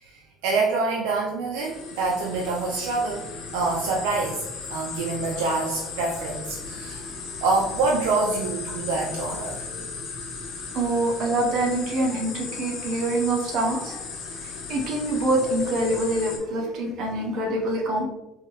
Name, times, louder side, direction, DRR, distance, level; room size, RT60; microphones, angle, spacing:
voice 1, 0.0-3.3 3.5-7.1 7.4-9.6, right 3 dB, 85° right, -1 dB, 0.6 m, -26 dB
sound 1, 1.6-16.4, left 4 dB, 65° left, 1.3 m, -36 dB
voice 2, 10.7-14.0 14.7-18.1, right 1 dB, 65° right, 1 dB, 1.0 m, -25 dB
4.6 x 2.8 x 3.1 m, 1.0 s
supercardioid pair, 100°, 0 cm